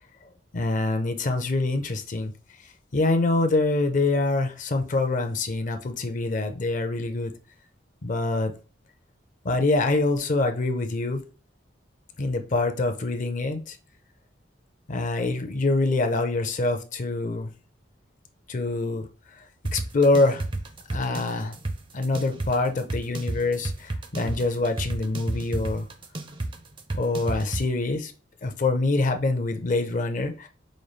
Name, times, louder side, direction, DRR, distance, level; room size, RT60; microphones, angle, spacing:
voice 1, 0.5-2.3 2.9-7.3 8.0-8.5 9.4-11.2 12.2-13.6 14.9-17.5 18.5-19.1 19.7-20.4 20.9-21.5 21.9-25.9 26.9-28.1 28.4-30.5, left 2 dB, 45° left, 0.5 m, -25 dB
sound 1, 19.7-27.7, right 2 dB, 25° right, 0.5 m, -31 dB
5.1 x 2.3 x 3.1 m
head